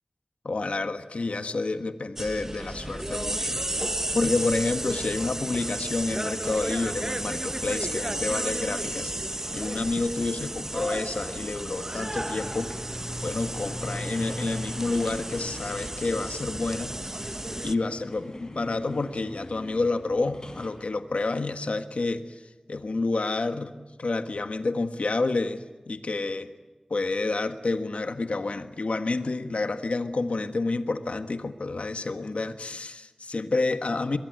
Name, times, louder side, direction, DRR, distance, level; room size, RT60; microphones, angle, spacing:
voice 1, 0.4-3.6 4.1-9.1 9.5-12.7 13.2-22.2 22.7-23.7 24.0-26.5 26.9-34.2, left 3 dB, 85° left, 9 dB, 1.5 m, -29 dB
sound 1, 2.2-17.7, right 1 dB, 20° right, 0.8 m, -33 dB
Truck, 3.5-16.4, equal, ahead, 3.7 m, -54 dB
sound 2, 12.3-20.8, left 1 dB, 35° left, 4.5 m, -40 dB
23.0 x 21.0 x 9.4 m, 1.2 s
wide cardioid pair, 60°, 2 cm